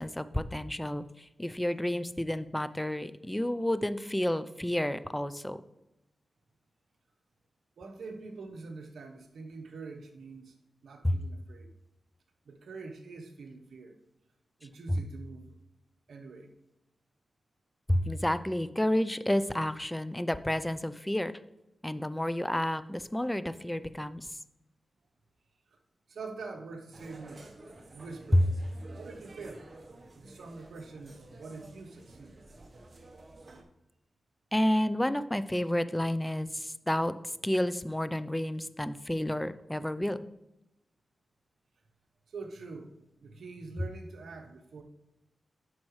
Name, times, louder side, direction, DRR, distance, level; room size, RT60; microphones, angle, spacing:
voice 1, 0.0-5.6 11.0-11.2 14.9-15.0 17.9-21.3 21.8-24.3 28.3-28.4 34.5-37.1 37.4-40.2, left 1 dB, 10° left, 14 dB, 0.5 m, -30 dB
voice 2, 7.8-10.5 10.8-11.7 12.4-14.0 14.6-15.5 16.1-16.5 26.1-28.5 28.9-29.6 30.1-32.4 42.3-44.8, right 4 dB, 85° right, 4 dB, 1.0 m, -45 dB
sound 1, 26.9-33.6, right 2 dB, 50° right, 1.1 m, -51 dB
9.6 x 6.0 x 3.2 m, 0.92 s
cardioid pair, 55°, 0 cm